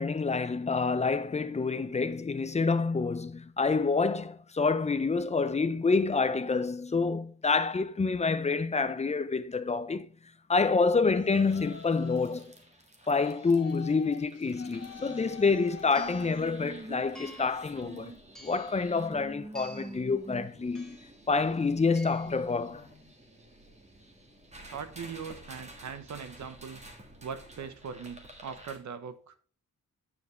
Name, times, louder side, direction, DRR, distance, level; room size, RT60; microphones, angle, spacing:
voice 1, 0.0-10.1 10.5-12.5 13.1-18.1 18.4-21.0 21.3-22.9, left 4 dB, 20° left, 0.5 m, -27 dB
Yell, 11.1-12.5 13.2-16.6, left 7 dB, 50° left, 1.6 m, -48 dB
sound 1, 11.5-28.8, right 2 dB, 20° right, 1.6 m, -48 dB
sound 2, 15.9-16.4 17.1-17.6 18.3-18.8 19.5-20.0 20.7-21.2 21.9-22.4, equal, ahead, 2.0 m, -50 dB
voice 2, 24.6-26.9 27.2-29.4, right 6 dB, 65° right, 1.0 m, -41 dB
9.1 x 7.0 x 3.2 m
wide cardioid pair, 125°, 31 cm